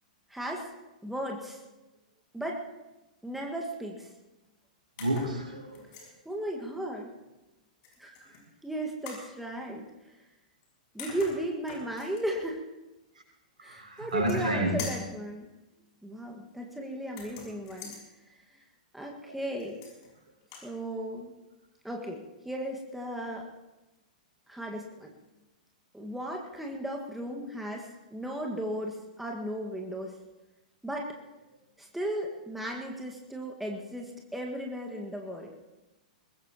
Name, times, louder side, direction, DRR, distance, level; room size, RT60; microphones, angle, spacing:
voice 1, 0.3-0.7 1.0-1.6 2.3-2.6 3.2-4.1 6.3-7.1 8.0-8.1 8.6-9.9 10.9-12.6 13.6-15.5 16.0-18.0 18.5-18.6 18.9-19.8 20.6-21.3 21.8-23.5 24.5-25.1 25.9-30.2 30.8-31.1 31.8-35.5, right 1 dB, 5° right, 0 dB, 1.8 m, -35 dB
sound 1, 5.0-5.3 5.7-6.1 7.8-8.4 9.0-9.3 10.6-10.7 11.0-12.2 14.0-14.5 14.8-15.1 17.1-18.0 19.6-20.1 20.4-20.7, left 5 dB, 45° left, 6.3 m, -44 dB
voice 2, 5.0-6.1 13.6-14.8 16.8-16.9 19.2-19.4, right 1 dB, 75° right, 0 dB, 6.4 m, -31 dB
23.0 x 20.0 x 3.0 m, 1.0 s
figure-of-eight pair, 100°, 4 cm